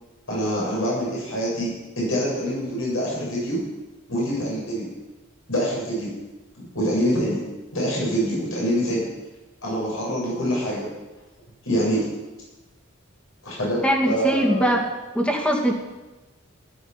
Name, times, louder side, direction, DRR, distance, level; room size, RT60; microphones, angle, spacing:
voice 1, 0.3-3.6 4.1-4.9 5.5-6.1 6.6-7.4 7.7-9.0 9.6-10.9 11.6-12.0 13.4-14.7, equal, 70° left, -5 dB, 7.9 m, -25 dB
voice 2, 13.8-14.9 15.1-15.7, equal, 5° left, 0 dB, 2.4 m, -21 dB
15.5 x 12.0 x 7.3 m, 1.1 s
head